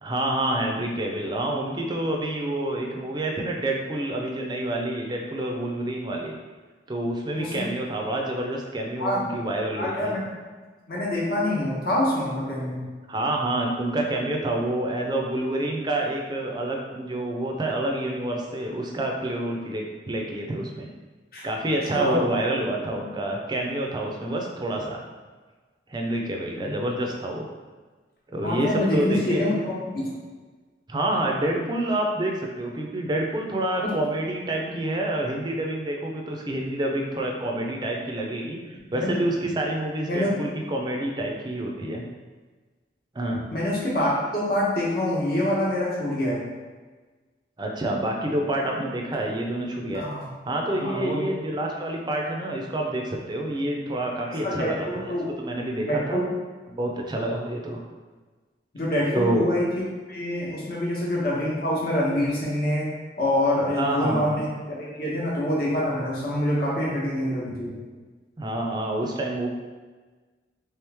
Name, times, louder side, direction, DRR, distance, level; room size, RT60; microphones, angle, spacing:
voice 1, 0.0-6.4 6.9-10.1 13.1-20.9 21.4-25.0 25.9-27.5 28.3-29.6 30.9-42.0 43.1-43.5 47.6-50.1 50.5-56.2 56.7-57.8 59.1-59.5 63.8-64.4 68.4-69.5, right 1 dB, 25° right, 0 dB, 0.4 m, -28 dB
voice 2, 7.3-7.6 9.0-9.2 9.7-10.2 10.9-12.8 21.3-21.4 21.9-22.2 26.6-26.7 28.4-30.1 33.8-33.9 39.0-39.2 40.1-40.3 43.5-46.4 49.9-50.3 50.8-51.2 54.3-55.3 55.9-56.3 58.7-62.9 63.2-67.8, left 1 dB, 50° left, -5 dB, 1.0 m, -26 dB
3.4 x 3.0 x 3.4 m, 1.4 s
head